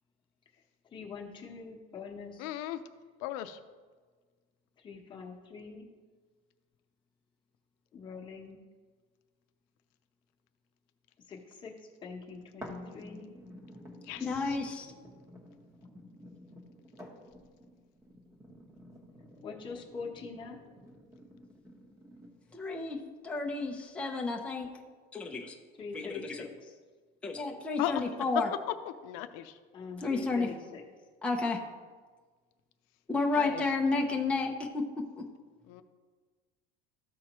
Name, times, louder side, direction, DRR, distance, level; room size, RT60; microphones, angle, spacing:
voice 1, 0.9-2.6 4.8-5.9 7.9-8.6 11.3-13.3 19.4-20.6 25.8-26.8 29.7-30.8, left 5 dB, 25° left, -1 dB, 1.0 m, -44 dB
voice 2, 2.4-2.8 3.2-3.6 14.1-14.6 27.8-28.0 29.0-29.6 33.3-33.7 35.7-35.8, left 13 dB, 85° left, 9 dB, 0.5 m, -36 dB
sound 1, 12.6-22.6 23.2-23.3, left 1 dB, 15° right, 1.0 m, -51 dB
voice 3, 14.2-14.9 22.5-24.7 25.1-25.5 25.9-26.4 27.2-28.5 30.0-30.5 31.2-31.6 33.1-34.8 35.2-35.3, left 3 dB, 5° left, 0 dB, 0.5 m, -31 dB
13.5 x 4.7 x 2.9 m, 1.4 s
cardioid pair, 165°, 21 cm